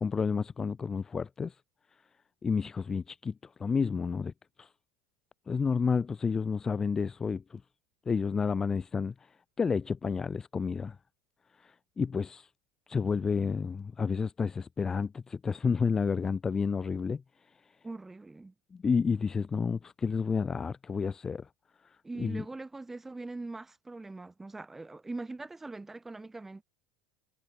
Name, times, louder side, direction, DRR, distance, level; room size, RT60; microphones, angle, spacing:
voice 1, 0.0-1.5 2.4-3.3 3.6-4.3 4.6-4.7 5.5-7.6 8.1-9.1 9.6-11.0 11.6-12.5 12.9-17.2 18.8-21.5 22.2-22.4, left 5 dB, 20° left, 0.5 m, -30 dB
voice 2, 17.8-18.5 22.0-26.6, right 2 dB, 10° right, 3.3 m, -41 dB
supercardioid pair, 130°, 3 cm